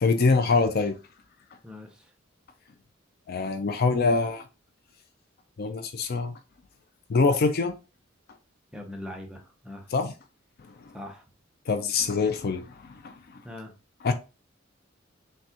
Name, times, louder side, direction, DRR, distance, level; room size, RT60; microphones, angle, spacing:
voice 1, 0.0-0.9 3.3-4.4 5.6-6.4 7.1-7.7 9.9-10.1 11.7-13.2 14.0-14.1, left 4 dB, 50° left, 0.4 m, -24 dB
voice 2, 1.6-2.1 8.7-9.9 10.9-11.2 13.4-13.7, left 1 dB, 5° right, 0.7 m, -41 dB
5.9 x 2.3 x 2.8 m
head